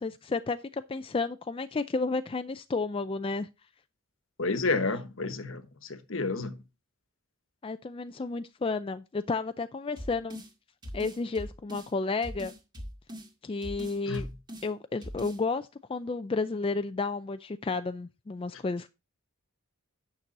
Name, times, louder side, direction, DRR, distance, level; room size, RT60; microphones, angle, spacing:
voice 1, 0.0-3.5 7.6-10.4 10.9-12.5 13.4-14.3 14.6-18.9, left 3 dB, 25° left, 0.3 m, -32 dB
voice 2, 4.4-6.6 14.1-14.3, left 3 dB, 65° left, 1.2 m, -30 dB
sound 1, 10.0-10.5 10.8-11.9 12.2-13.3 13.6-14.7 15.0-15.4, equal, 20° right, 2.0 m, -41 dB
9.2 x 6.1 x 4.1 m
head